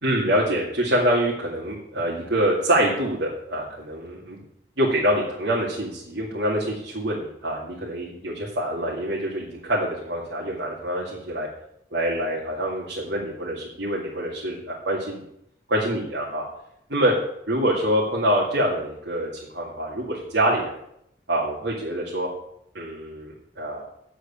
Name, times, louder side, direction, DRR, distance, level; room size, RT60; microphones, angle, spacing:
voice 1, 0.0-4.4 4.8-11.5 11.9-15.2 15.7-16.4 16.9-17.1 17.5-20.8 21.3-22.3 22.7-23.8, right 1 dB, 85° right, -4 dB, 2.2 m, -25 dB
8.2 x 7.7 x 8.5 m, 0.76 s
head